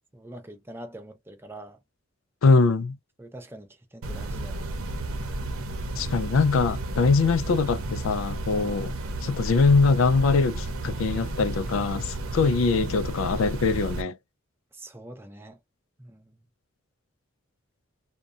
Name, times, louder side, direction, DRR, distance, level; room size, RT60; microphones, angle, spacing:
voice 1, 0.1-1.8 3.2-4.7 14.7-15.6 16.0-16.5, right 1 dB, 10° right, 0.5 m, -44 dB
voice 2, 2.4-3.0 6.0-8.9 9.2-14.2, left 4 dB, 70° left, 0.4 m, -22 dB
sound 1, 4.0-14.0, right 1 dB, 90° right, 0.7 m, -32 dB
2.7 x 2.2 x 2.4 m
head